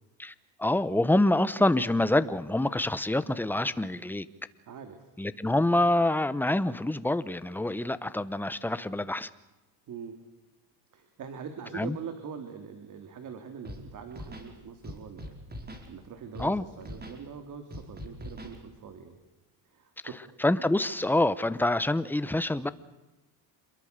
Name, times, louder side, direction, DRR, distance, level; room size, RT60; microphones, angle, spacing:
voice 1, 0.6-4.3 5.2-9.3 11.7-12.0 16.4-16.7 20.4-22.7, left 1 dB, 5° left, 1.0 m, -26 dB
voice 2, 4.7-5.1 9.9-10.2 10.9-15.4 15.6-19.2 19.6-20.2, right 6 dB, 45° right, 3.0 m, -43 dB
Scratching (performance technique), 13.6-13.8 14.1-14.5 14.8-15.9 16.3-16.5 16.8-17.2 17.7-18.6, equal, 25° right, 5.2 m, -41 dB
27.5 x 22.5 x 6.8 m
cardioid pair, 110°, 41 cm